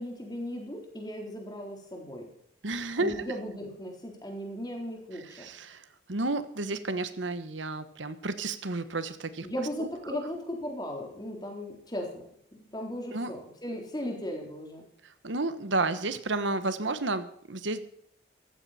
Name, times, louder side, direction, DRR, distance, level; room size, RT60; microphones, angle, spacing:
voice 1, 0.0-2.3 3.0-5.5 9.4-12.3 12.6-14.8, equal, 20° left, 1 dB, 3.7 m, -37 dB
voice 2, 2.6-3.1 5.2-9.5 9.8-10.2 13.1-13.3 15.0-17.8, right 2 dB, 80° right, 12 dB, 1.3 m, -32 dB
15.0 x 14.0 x 4.3 m, 0.69 s
head